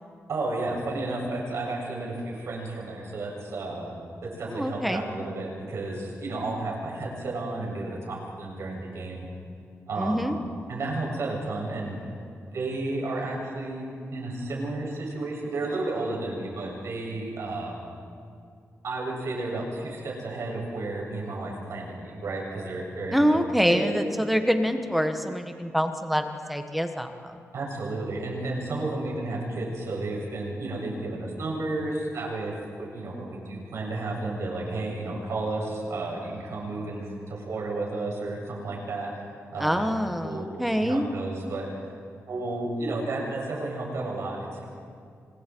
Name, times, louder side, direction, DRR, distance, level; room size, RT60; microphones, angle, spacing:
voice 1, 0.3-3.9 4.4-9.3 9.9-10.3 10.7-12.0 12.5-17.7 18.8-23.2 23.7-24.0 27.5-39.2 39.5-41.7 42.3-44.6, right 2 dB, 75° right, -2 dB, 7.4 m, -32 dB
voice 2, 4.5-5.0 10.0-10.4 23.1-27.4 39.6-41.1, equal, ahead, 6 dB, 1.4 m, -25 dB
29.5 x 25.0 x 4.7 m, 2.3 s
wide cardioid pair, 125°, 5 cm